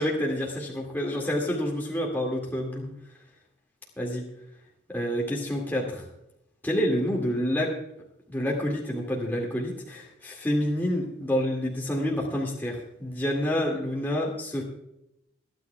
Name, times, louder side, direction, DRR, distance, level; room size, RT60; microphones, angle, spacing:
voice 1, 0.0-2.9 4.0-4.3 4.9-6.0 6.6-7.7 8.3-14.6, equal, 10° left, -2 dB, 2.1 m, -28 dB
29.5 x 9.9 x 2.3 m, 0.81 s
head